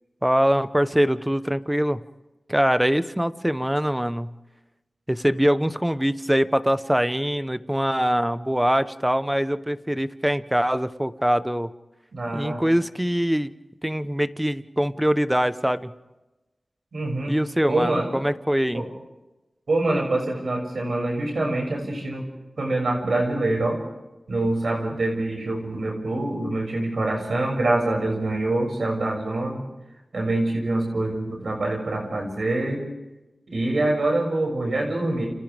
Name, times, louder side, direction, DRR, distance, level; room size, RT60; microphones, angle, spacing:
voice 1, 0.2-2.0 2.5-4.3 5.1-11.7 12.3-13.5 13.8-15.9 17.3-18.8, equal, 10° right, 12 dB, 1.0 m, -23 dB
voice 2, 12.1-12.6 16.9-17.3 17.7-18.1 18.7-18.9 19.7-22.2 22.6-23.8 24.3-29.6 30.1-32.8 33.5-35.3, right 2 dB, 80° right, 0 dB, 6.7 m, -25 dB
30.0 x 29.0 x 3.6 m, 1.0 s
cardioid pair, 50°, 0 cm